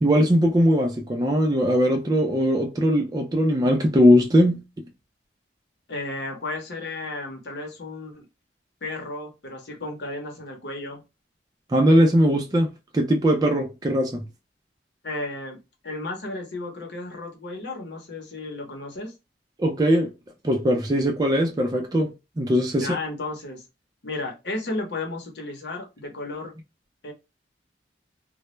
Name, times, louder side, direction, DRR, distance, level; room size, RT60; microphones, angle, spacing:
voice 1, 0.0-4.6 11.7-12.7 12.9-14.2 19.6-20.1 20.4-22.9, equal, 20° right, 0.3 m, -20 dB
voice 2, 5.9-8.2 8.8-11.0 15.0-15.6 15.8-19.1 22.8-23.6 24.0-26.5 27.0-27.1, left 2 dB, 70° left, 0.8 m, -33 dB
2.2 x 2.0 x 3.0 m
head